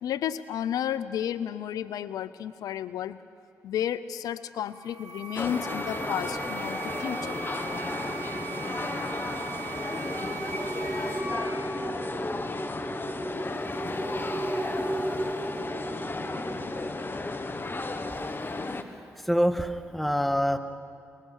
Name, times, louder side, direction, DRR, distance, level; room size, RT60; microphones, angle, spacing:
voice 1, 0.0-3.2 3.6-7.4, left 10 dB, 90° left, 15 dB, 0.5 m, -32 dB
sound 1, 4.7-11.2, right 6 dB, 65° right, 6.4 m, -40 dB
sound 2, 5.4-18.8, left 2 dB, 35° left, 1.6 m, -34 dB
sound 3, 7.0-16.9, right 1 dB, 25° right, 2.8 m, -36 dB
voice 2, 19.1-20.6, equal, ahead, 9 dB, 1.7 m, -25 dB
24.0 x 20.5 x 6.4 m, 2.5 s
supercardioid pair, 45°, 6 cm